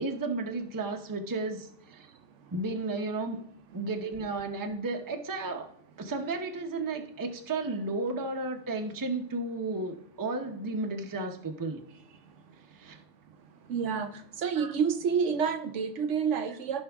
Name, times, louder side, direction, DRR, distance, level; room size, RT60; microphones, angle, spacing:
voice 1, 0.0-2.1 2.5-3.4 3.7-5.7 6.0-11.8 12.8-13.0 14.6-14.7, right 3 dB, 20° right, 4 dB, 0.7 m, -33 dB
voice 2, 13.7-14.1 14.4-16.8, right 6 dB, 65° right, 9 dB, 0.9 m, -28 dB
15.0 x 5.5 x 3.5 m, 0.65 s
omnidirectional pair, 1.4 m